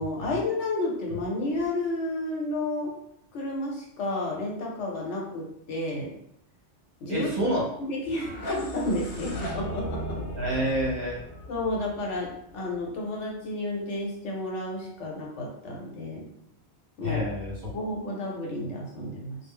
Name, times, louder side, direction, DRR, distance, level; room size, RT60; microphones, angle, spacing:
voice 1, 0.0-2.9 3.3-6.1 7.0-7.3 7.8-10.2 11.5-16.2 17.0-17.2 17.7-19.4, left 2 dB, 85° left, -2 dB, 1.1 m, -31 dB
voice 2, 7.1-7.6 10.4-11.2 17.0-17.7, equal, 45° right, -4 dB, 0.8 m, -28 dB
sound 1, 8.0-12.9, equal, 60° left, 0.6 m, -37 dB
2.3 x 2.0 x 3.6 m, 0.75 s
omnidirectional pair, 1.2 m